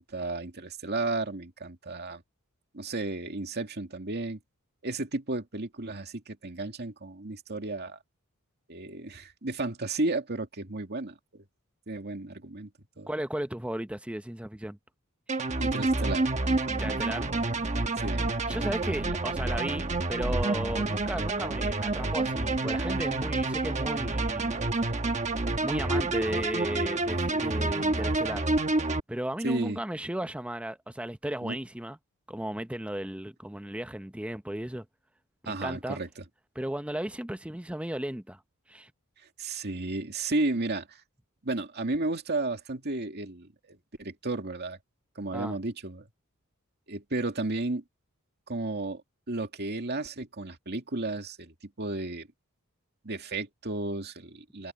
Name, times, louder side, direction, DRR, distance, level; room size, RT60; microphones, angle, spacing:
voice 1, 0.0-2.2 2.7-4.4 4.8-8.0 8.7-11.4 11.9-12.7 13.0-13.1 15.6-16.3 18.0-18.3 29.4-29.8 31.4-31.6 35.5-36.2 39.4-41.0 41.4-44.8 45.2-46.1 46.9-47.8 48.5-49.0 49.3-52.3 53.0-54.7, right 2 dB, 50° right, 2.4 m, -33 dB
voice 2, 13.1-14.8 15.3-15.4 16.7-17.3 18.5-24.6 25.6-28.5 29.1-32.0 32.3-34.9 35.4-36.0 36.5-38.4 38.7-38.9 45.3-45.6, right 1 dB, 5° right, 0.8 m, -35 dB
sound 1, 15.3-29.0, right 2 dB, 35° right, 1.2 m, -28 dB
head